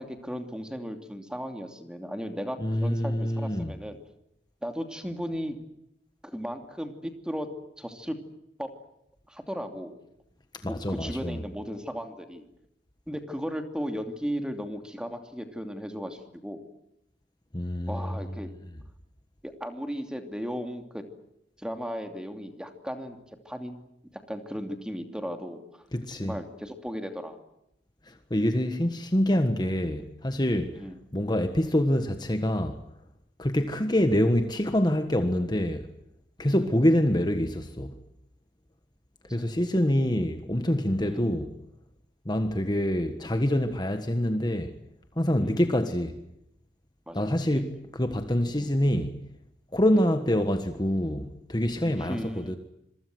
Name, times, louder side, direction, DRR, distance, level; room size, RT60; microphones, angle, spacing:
voice 1, 0.0-4.0 4.6-5.6 6.2-7.5 7.8-8.2 8.6-8.7 9.3-10.0 10.6-12.4 13.1-16.6 17.9-18.5 19.4-21.0 21.6-23.2 23.4-23.9 24.3-25.8 26.1-27.4 30.8-31.0 36.6-36.7 41.0-41.3 45.4-45.6 47.1-47.6 48.6-48.7 49.9-50.1 51.8-52.6, equal, 5° right, 2.8 m, -36 dB
voice 2, 2.6-3.7 10.5-11.4 17.5-18.0 25.9-26.3 28.1-30.8 31.1-32.8 33.4-35.9 36.4-38.0 39.3-41.5 42.2-44.7 45.2-46.1 47.1-49.2 49.7-52.6, left 1 dB, 25° left, 1.5 m, -26 dB
26.5 x 23.5 x 7.8 m
head